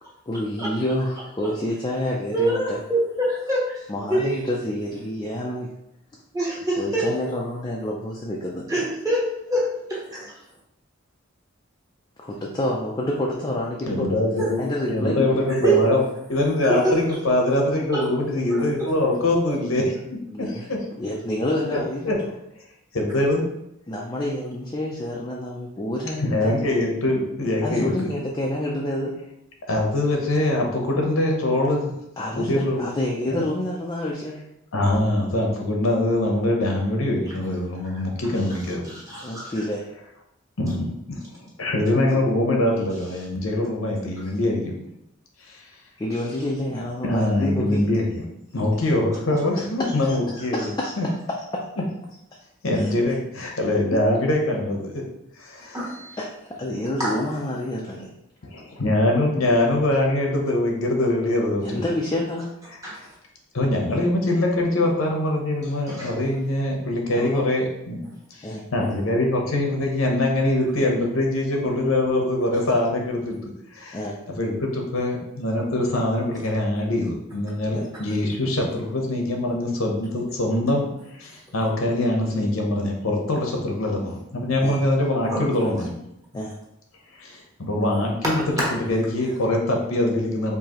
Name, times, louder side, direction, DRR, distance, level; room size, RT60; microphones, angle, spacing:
voice 1, 0.3-2.8 3.9-5.7 6.8-8.9 12.2-14.2 14.6-15.4 20.3-20.7 21.0-22.3 23.9-26.5 27.6-29.1 32.2-34.4 39.2-39.8 42.1-42.2 46.0-47.8 49.8-50.9 51.5-51.6 52.8-52.9 53.9-54.0 56.2-56.3 56.6-58.1 61.6-62.5 67.1-67.5 68.4-68.6 73.9-74.1 77.7-77.9 84.6-84.8 86.3-86.6, left 1 dB, 20° left, -3 dB, 0.4 m, -28 dB
voice 2, 2.3-3.8 4.1-4.4 6.3-7.1 8.7-9.7 10.1-10.2 14.4-14.5 15.6-15.8 16.6-16.9 17.9-18.0 18.5-18.9 38.8-39.5 55.7-56.2 57.0-57.1 62.8-62.9 65.9-66.1 84.7-84.8 85.3-85.4 88.6-88.7, right 2 dB, 15° right, -6 dB, 1.1 m, -25 dB
voice 3, 13.9-14.6 14.9-16.0 16.3-19.9 20.4-20.8 21.7-21.8 22.0-22.1 22.9-23.4 26.2-28.1 29.7-31.9 32.4-32.9 33.3-33.4 34.7-38.8 40.6-44.8 45.5-45.6 47.0-48.0 48.5-51.1 52.6-54.9 55.4-55.8 58.5-61.8 62.9-63.1 63.5-74.0 74.4-80.9 81.2-86.0 87.2-88.4 88.7-90.6, left 1 dB, 90° left, 1 dB, 0.8 m, -23 dB
4.8 x 2.7 x 2.9 m, 0.82 s
head